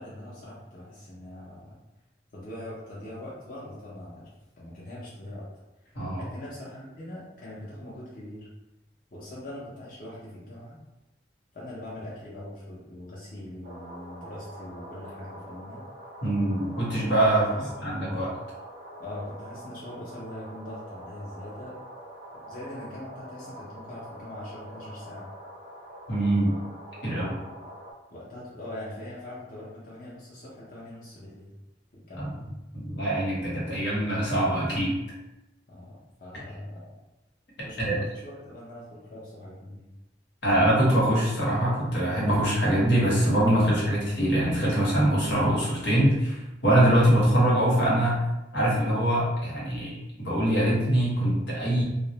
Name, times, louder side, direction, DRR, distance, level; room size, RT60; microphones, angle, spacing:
voice 1, 0.0-1.7 2.3-4.3 4.6-5.4 6.2-8.5 9.1-10.8 11.5-15.8 17.4-17.9 19.0-21.7 22.5-25.3 28.1-31.5 31.9-32.3 35.7-36.9 37.6-39.8, left 1 dB, 50° left, -8 dB, 0.7 m, -42 dB
sound 1, 13.6-27.9, right 1 dB, 55° right, 0.5 m, -45 dB
voice 2, 16.2-17.4 17.8-18.3 26.1-26.5 27.0-27.3 32.2-32.3 32.7-34.9 37.8-38.0 40.4-48.2 48.5-51.8, right 1 dB, 85° left, -6 dB, 1.0 m, -23 dB
2.4 x 2.0 x 2.8 m, 0.97 s
head